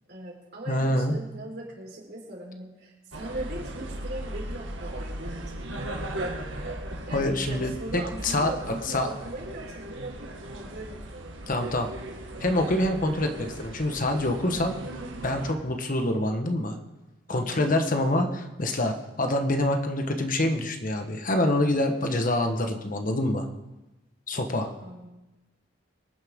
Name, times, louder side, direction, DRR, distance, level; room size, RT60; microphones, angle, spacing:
voice 1, 0.1-6.5 7.1-11.5 17.3-17.8 24.8-25.1, right 1 dB, 60° right, -2 dB, 4.1 m, -40 dB
voice 2, 0.7-1.1 7.1-8.5 8.8-9.1 11.5-11.9 12.4-14.8 15.1-16.7 17.3-23.5 24.3-24.7, left 1 dB, 45° left, 5 dB, 1.3 m, -26 dB
sound 1, 3.1-15.5, right 1 dB, 90° right, 1.9 m, -37 dB
25.0 x 9.8 x 3.7 m, 1.0 s
head